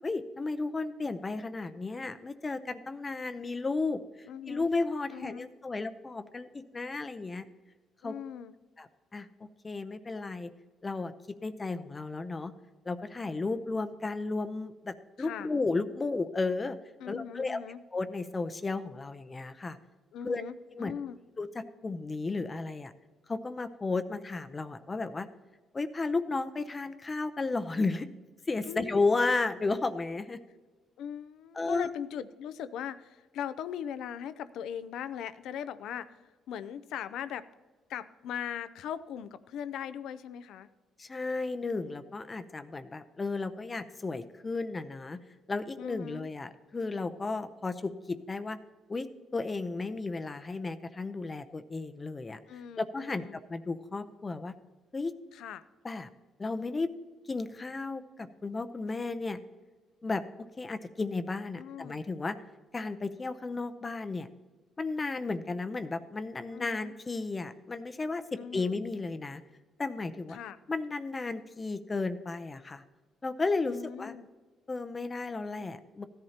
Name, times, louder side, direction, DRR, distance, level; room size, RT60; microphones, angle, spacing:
voice 1, 0.0-7.4 8.0-8.1 8.8-9.3 9.6-10.5 10.8-11.1 11.4-12.5 12.9-16.8 17.1-17.6 17.9-19.8 20.2-20.4 20.7-20.9 21.4-22.9 23.3-25.3 25.7-28.1 28.5-30.4 31.5-31.9 41.0-45.2 45.5-48.6 48.9-52.4 52.8-53.2 53.5-54.5 54.9-55.1 55.8-56.1 56.4-56.9 57.3-59.4 60.0-60.2 60.6-62.4 62.7-64.3 64.8-69.4 69.8-70.4 70.7-72.8 73.2-74.2 74.7-76.0, left 3 dB, 25° left, 11 dB, 0.6 m, -33 dB
voice 2, 4.3-4.7 5.1-5.5 8.0-8.5 15.2-15.5 17.0-17.8 20.1-21.2 28.7-29.0 31.0-37.5 37.9-40.7 45.8-46.3 52.5-53.4 55.3-55.6 61.6-62.0 66.5-66.9 68.4-68.8 70.3-70.6 73.7-74.3, left 9 dB, 80° left, 15 dB, 0.5 m, -40 dB
16.0 x 11.0 x 2.9 m, 1.3 s
cardioid pair, 90°, 0 cm